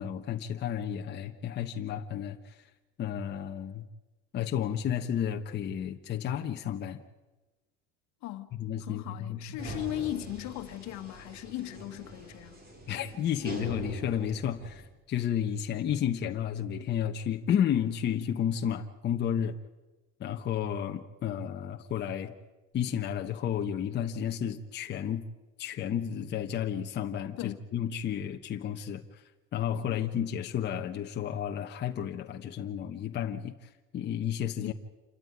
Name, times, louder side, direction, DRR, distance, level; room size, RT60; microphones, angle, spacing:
voice 1, 0.0-2.7 3.0-3.8 4.3-7.0 8.6-9.4 12.9-19.5 20.2-22.3 22.7-25.3 25.6-29.2 29.5-34.7, left 9 dB, 30° left, 1.2 m, -32 dB
voice 2, 8.2-8.6 8.8-12.6 27.4-27.7 29.9-30.0 34.6-34.7, left 14 dB, 55° left, 1.6 m, -38 dB
sound 1, 9.6-14.9, right 1 dB, 30° right, 4.7 m, -43 dB
28.0 x 13.5 x 9.6 m
cardioid pair, 145°, 33 cm